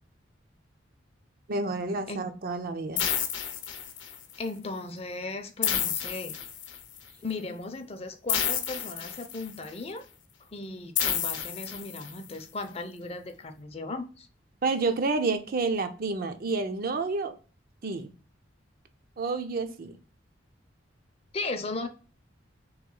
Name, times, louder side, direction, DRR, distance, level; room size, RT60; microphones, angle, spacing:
voice 1, 1.5-3.1 14.6-17.3 17.8-18.1 19.2-20.0, right 3 dB, 50° right, 8 dB, 0.5 m, -29 dB
sound 1, 3.0-4.3 5.6-7.0 8.3-9.7 11.0-12.3, left 9 dB, 70° left, 0.7 m, -30 dB
voice 2, 4.4-6.3 7.2-10.0 10.5-14.3 21.3-21.9, left 3 dB, 30° left, 8 dB, 0.5 m, -36 dB
3.1 x 3.1 x 3.7 m, 0.35 s
head